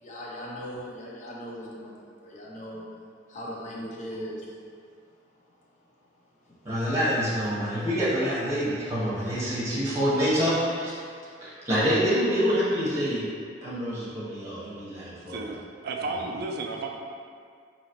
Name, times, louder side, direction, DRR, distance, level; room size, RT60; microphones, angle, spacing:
voice 1, 0.0-2.9 3.3-4.5 7.5-7.8, equal, 40° left, -4 dB, 0.6 m, -39 dB
voice 2, 6.6-10.9 11.4-13.3 13.6-15.4, equal, 15° right, -10 dB, 1.2 m, -26 dB
voice 3, 15.3-16.9, right 3 dB, 55° right, 2 dB, 0.4 m, -33 dB
4.0 x 2.8 x 3.0 m, 2.2 s
head